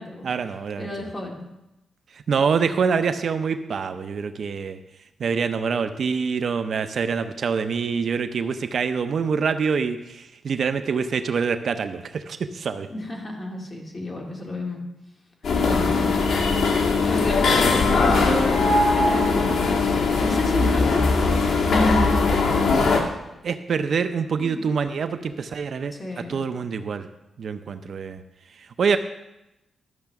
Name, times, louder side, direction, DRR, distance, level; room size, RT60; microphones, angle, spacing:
voice 1, 0.2-0.9 2.1-4.8 5.2-12.9 23.4-25.9 26.3-27.1 27.4-28.2 28.5-29.0, right 5 dB, 55° right, 9 dB, 0.6 m, -25 dB
voice 2, 0.8-1.4 12.9-14.8 15.6-16.1 17.1-21.1 21.6-22.8 24.4-24.6 25.9-26.4, left 1 dB, 25° left, -1 dB, 2.4 m, -30 dB
sound 1, 15.4-23.0, left 3 dB, 65° left, 1.7 m, -20 dB
12.5 x 6.6 x 5.9 m, 0.93 s
wide cardioid pair, 145°, 0 cm